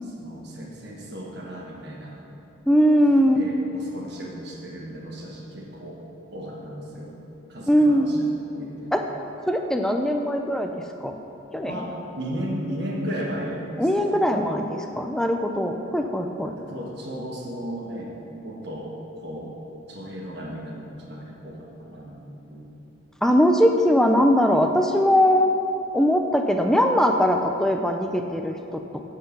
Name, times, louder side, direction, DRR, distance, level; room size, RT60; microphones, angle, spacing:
voice 1, 0.2-2.2 3.2-6.0 6.3-7.2 7.5-9.0 11.6-13.6 14.0-14.2 16.6-18.1 18.4-18.9 19.2-19.5 19.9-22.7, equal, 55° right, -3 dB, 1.4 m, -35 dB
voice 2, 2.7-3.4 7.7-8.1 8.9-9.0 9.5-10.7 11.0-11.2 11.5-11.8 13.8-16.6 23.2-25.5 25.9-29.0, equal, 5° left, 4 dB, 0.4 m, -20 dB
7.9 x 5.8 x 6.8 m, 2.8 s
head